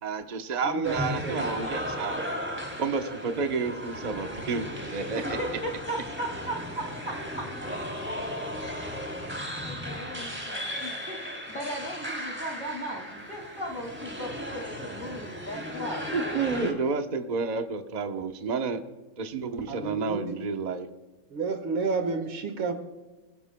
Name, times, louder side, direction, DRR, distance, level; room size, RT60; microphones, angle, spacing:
voice 1, 0.0-2.2 2.8-5.4 16.1-18.8 19.2-20.9, right 4 dB, 45° right, 6 dB, 0.5 m, -30 dB
voice 2, 0.6-1.4 19.7-20.4 21.3-22.7, right 4 dB, 75° right, 7 dB, 2.4 m, -30 dB
sound 1, 0.8-16.7, equal, 5° right, 2.9 m, -35 dB
voice 3, 5.1-7.5 9.6-16.1, right 1 dB, 40° left, 0 dB, 2.7 m, -37 dB
23.0 x 15.0 x 2.2 m, 1.2 s
omnidirectional pair, 2.3 m